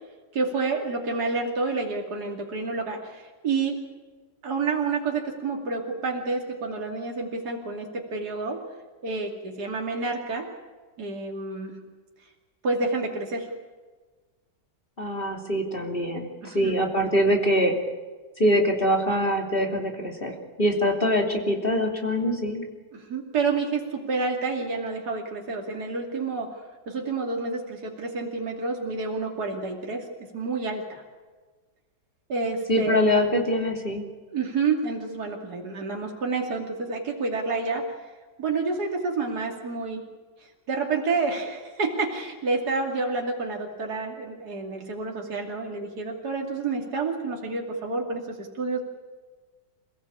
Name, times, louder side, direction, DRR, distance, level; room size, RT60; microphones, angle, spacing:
voice 1, 0.3-3.8 4.4-8.6 9.0-10.5 11.0-11.8 12.6-13.5 16.4-16.8 22.9-26.6 26.9-31.0 32.3-33.0 34.3-37.8 38.4-40.0 40.7-48.8, right 4 dB, 65° right, 0 dB, 3.1 m, -29 dB
voice 2, 15.0-17.7 18.4-22.6 32.7-34.1, equal, 30° left, 1 dB, 3.1 m, -24 dB
27.5 x 17.0 x 8.6 m, 1.4 s
omnidirectional pair, 1.9 m